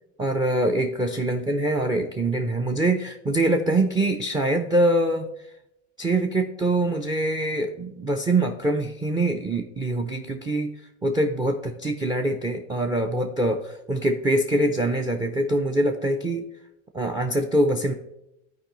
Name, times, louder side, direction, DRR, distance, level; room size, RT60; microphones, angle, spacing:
voice 1, 0.2-5.3 6.0-10.8 11.0-16.5 16.9-17.9, right 1 dB, 10° right, 6 dB, 0.4 m, -24 dB
13.0 x 4.6 x 3.0 m, 0.85 s
supercardioid pair, 110°, 37 cm